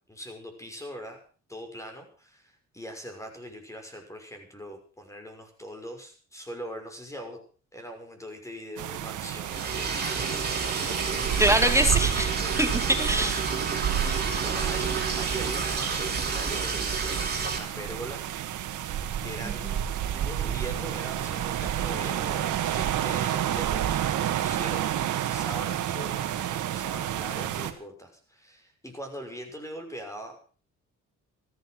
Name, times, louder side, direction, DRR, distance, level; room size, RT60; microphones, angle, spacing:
voice 1, 0.1-1.2 1.5-7.4 7.7-11.9 12.4-12.6 14.3-18.9 19.2-19.7 20.1-24.1 24.3-25.0 25.3-30.4, equal, 10° left, 5 dB, 6.0 m, -41 dB
sound 1, 8.8-27.7, right 10 dB, 80° right, 1.9 m, -30 dB
Liquid, 9.4-17.6, right 4 dB, 30° right, 5.5 m, -30 dB
voice 2, 11.4-12.3 12.6-13.4, right 1 dB, 10° right, 7 dB, 2.2 m, -23 dB
15.0 x 14.0 x 6.1 m, 0.41 s
cardioid pair, 90°, 30 cm